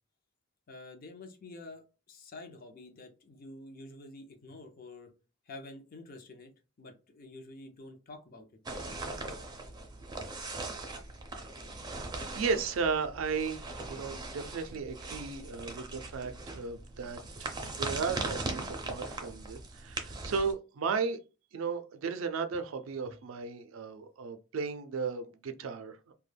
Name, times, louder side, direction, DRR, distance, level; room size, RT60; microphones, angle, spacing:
voice 1, 0.7-5.1 5.5-6.5 6.8-8.5 23.0-23.1, left 2 dB, 45° left, 0.5 m, -48 dB
sound 1, 8.7-20.5, right 2 dB, 20° right, 0.4 m, -40 dB
voice 2, 12.3-17.5 17.8-21.2 21.5-26.1, right 5 dB, 80° right, 0.4 m, -35 dB
2.2 x 2.1 x 3.2 m
head